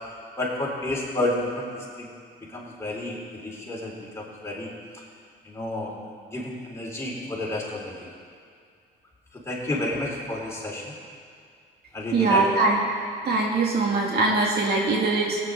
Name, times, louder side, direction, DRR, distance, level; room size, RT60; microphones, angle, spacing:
voice 1, 0.4-2.1 2.5-4.7 5.4-5.9 6.3-8.1 9.3-10.9 11.9-12.5, left 1 dB, 15° left, -5 dB, 3.7 m, -30 dB
voice 2, 12.1-12.8 13.2-15.4, right 3 dB, 55° right, -2 dB, 2.0 m, -22 dB
17.5 x 9.3 x 3.8 m, 2.2 s
cardioid pair, 90°, 20 cm